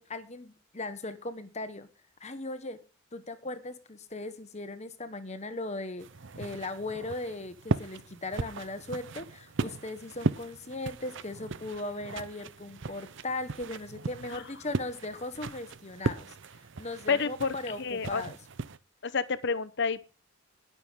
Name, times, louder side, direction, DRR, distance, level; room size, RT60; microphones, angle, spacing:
voice 1, 0.0-1.9 2.2-2.8 3.1-6.1 6.3-16.3 16.8-18.4, left 2 dB, 35° left, 10 dB, 1.3 m, -38 dB
sound 1, 6.0-18.8, right 3 dB, 60° right, 0.7 m, -37 dB
voice 2, 17.1-18.2 19.0-20.1, left 5 dB, 55° left, 15 dB, 0.9 m, -30 dB
20.5 x 7.0 x 3.7 m, 0.33 s
head